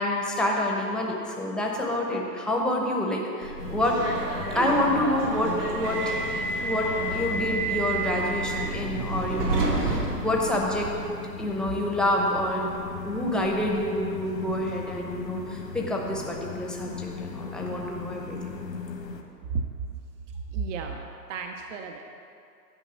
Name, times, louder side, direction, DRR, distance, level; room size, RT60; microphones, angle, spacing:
voice 1, 0.0-4.0 4.5-6.2 6.6-10.9 11.4-12.7 13.0-18.6, left 1 dB, ahead, -1 dB, 0.8 m, -28 dB
Subway metro underground, 3.4-11.0, right 3 dB, 90° right, 2.4 m, -30 dB
sound 1, 3.6-19.2, left 4 dB, 75° left, 1.4 m, -37 dB
voice 2, 20.3-21.0 21.3-22.1, right 5 dB, 50° right, 4 dB, 0.8 m, -32 dB
11.0 x 5.2 x 7.0 m, 2.5 s
hypercardioid pair, 130°, 48 cm